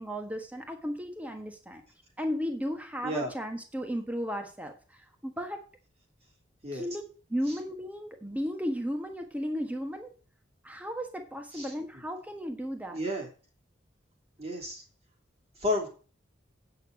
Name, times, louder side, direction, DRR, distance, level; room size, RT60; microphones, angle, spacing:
voice 1, 0.0-1.8 2.2-5.6 6.7-7.0 7.3-10.1 10.6-13.0, equal, 10° right, 5 dB, 1.4 m, -34 dB
voice 2, 11.5-12.0 12.9-13.3 14.4-14.8 15.6-15.9, left 1 dB, 30° right, 2 dB, 2.9 m, -32 dB
8.9 x 6.8 x 6.4 m, 0.38 s
head